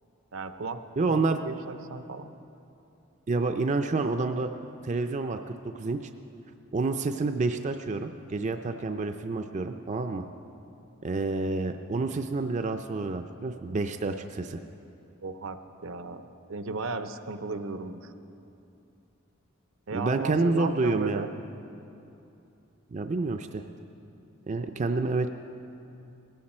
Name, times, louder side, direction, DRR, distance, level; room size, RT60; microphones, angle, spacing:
voice 1, 0.3-0.8 1.1-2.3 15.2-18.1 19.9-21.3, right 3 dB, 70° right, 10 dB, 0.7 m, -36 dB
voice 2, 1.0-1.4 3.3-4.5 4.8-6.0 6.7-10.3 11.0-14.6 19.9-21.3 22.9-23.7 24.5-25.3, right 3 dB, 35° right, 7 dB, 0.4 m, -28 dB
18.0 x 14.5 x 4.3 m, 2.8 s
head